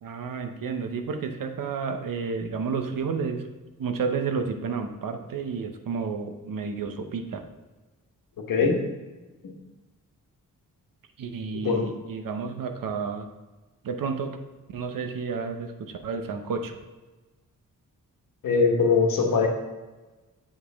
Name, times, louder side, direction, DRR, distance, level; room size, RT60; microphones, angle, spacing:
voice 1, 0.0-3.5 3.8-7.4 11.2-13.3 13.8-14.4 14.7-16.8, right 5 dB, 75° right, 6 dB, 0.8 m, -31 dB
voice 2, 8.5-8.8 9.4-9.5 11.6-11.9 18.4-19.5, left 4 dB, 75° left, 1 dB, 1.3 m, -21 dB
7.7 x 5.0 x 3.5 m, 1.2 s
wide cardioid pair, 165°, 33 cm